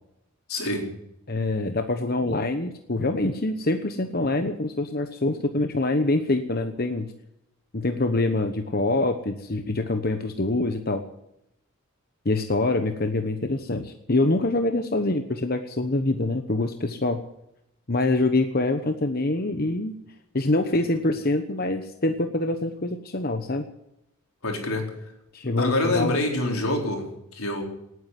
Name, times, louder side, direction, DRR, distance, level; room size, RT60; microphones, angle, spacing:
voice 1, 0.5-0.9 24.4-25.0 25.6-27.6, left 2 dB, 80° left, 2 dB, 4.4 m, -26 dB
voice 2, 1.3-7.1 7.7-11.0 12.2-17.2 17.9-20.0 20.3-23.6 25.3-26.2, left 2 dB, 45° left, 7 dB, 1.1 m, -25 dB
19.0 x 9.6 x 7.7 m, 0.82 s
head